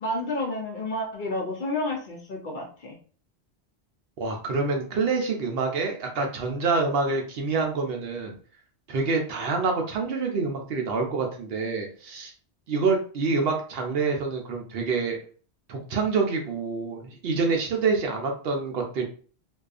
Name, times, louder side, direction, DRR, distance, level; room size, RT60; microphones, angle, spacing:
voice 1, 0.0-3.0, left 1 dB, 55° left, 0 dB, 0.6 m, -30 dB
voice 2, 4.2-8.4 8.9-12.3 12.7-15.2 15.7-19.0, right 4 dB, 65° right, 2 dB, 0.8 m, -26 dB
2.6 x 2.3 x 2.3 m, 0.41 s
omnidirectional pair, 1.1 m